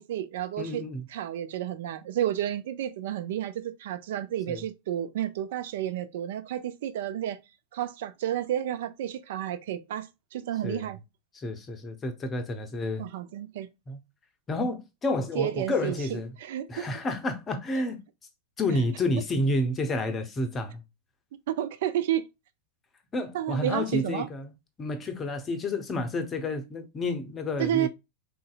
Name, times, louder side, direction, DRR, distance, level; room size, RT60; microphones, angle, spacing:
voice 1, 0.0-0.8 1.1-7.4 7.7-11.0 13.0-13.7 15.3-16.9 21.5-22.3 23.3-24.3 27.6-27.9, right 11 dB, 55° right, 0.4 m, -31 dB
voice 2, 0.6-1.0 4.5-4.6 10.6-10.9 11.3-13.1 13.9-14.0 14.5-16.3 16.7-18.0 18.6-20.8 23.1-24.5 24.8-27.9, left 2 dB, 20° left, 0.7 m, -30 dB
3.7 x 2.7 x 2.3 m
figure-of-eight pair, 90°, 0 cm